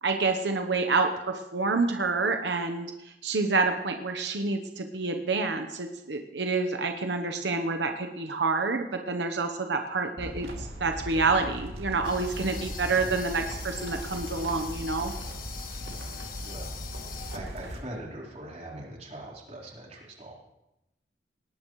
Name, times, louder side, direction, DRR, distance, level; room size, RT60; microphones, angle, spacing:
voice 1, 0.0-15.1, right 3 dB, 90° right, 5 dB, 1.0 m, -28 dB
sound 1, 10.2-17.8, equal, 70° right, 2.5 m, -38 dB
sound 2, 12.0-17.4, left 7 dB, 55° left, 1.5 m, -42 dB
voice 2, 16.4-16.7 17.1-20.4, right 1 dB, 40° right, -3 dB, 4.2 m, -42 dB
19.5 x 18.5 x 3.2 m, 0.93 s
head